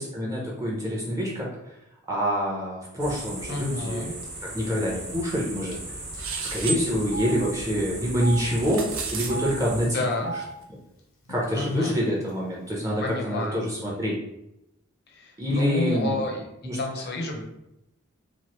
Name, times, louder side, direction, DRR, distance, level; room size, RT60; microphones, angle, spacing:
voice 1, 0.0-1.5 2.1-4.2 4.5-5.8 6.4-8.8 9.1-10.0 11.3-14.2 15.4-16.2 16.6-16.8 17.3-17.4, equal, 15° right, -4 dB, 0.5 m, -26 dB
sound 1, 3.0-9.9, right 1 dB, 50° right, 0.9 m, -37 dB
voice 2, 3.5-4.1 9.8-10.3 11.5-12.0 13.0-13.6 15.1-16.5 16.8-17.4, left 2 dB, 50° left, 1 dB, 0.5 m, -30 dB
Telephone, 4.2-4.4 4.7-4.8 5.7-5.9 6.1-6.2 7.0-7.3 8.1-8.4 9.2-9.5 10.1-10.4 11.3-11.4 11.6-12.3, right 3 dB, 85° left, 0.9 m, -35 dB
sound 2, 6.2-6.8 8.4-9.3, right 5 dB, 75° right, 0.5 m, -31 dB
3.0 x 2.4 x 2.9 m, 0.86 s
head